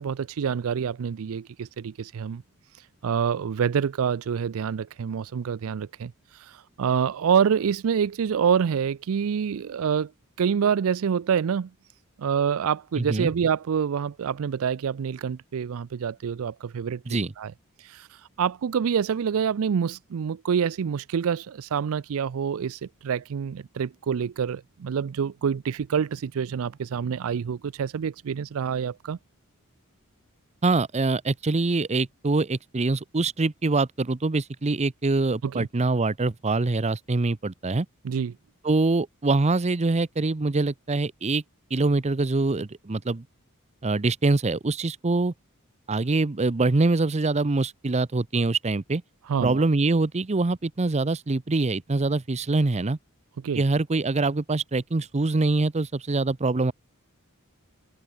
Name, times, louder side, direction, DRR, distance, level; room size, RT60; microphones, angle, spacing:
voice 1, 0.0-2.4 3.0-10.1 10.4-11.7 12.2-17.5 17.8-29.2 35.4-35.7 38.0-38.3 49.3-49.6 53.4-53.6, right 7 dB, 70° right, 0.4 m, -27 dB
voice 2, 13.0-13.3 17.1-17.3 30.6-37.9 38.6-41.4 41.7-43.3 43.8-45.3 45.9-49.0 49.4-53.0 53.5-56.7, right 3 dB, 30° right, 0.7 m, -24 dB
head